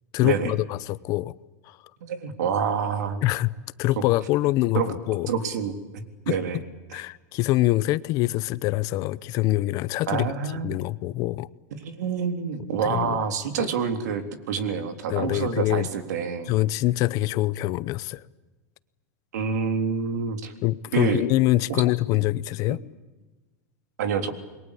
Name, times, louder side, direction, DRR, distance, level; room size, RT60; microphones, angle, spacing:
voice 1, 0.1-1.3 1.7-1.8 3.2-3.5 3.8-4.8 5.1-5.3 6.3-6.6 6.9-10.3 10.6-11.5 12.8-13.2 13.6-13.7 15.1-15.9 16.5-18.2 20.6-22.8, left 17 dB, 40° left, 0.8 m, -24 dB
voice 2, 2.0-3.2 4.7-4.9 5.3-6.6 6.9-7.0 10.1-10.7 11.7-16.5 19.3-20.5 20.9-21.2 21.7-21.8 24.0-24.3, right 6 dB, 80° right, 3.6 m, -27 dB
28.5 x 22.5 x 8.5 m
supercardioid pair, 150°, 9 cm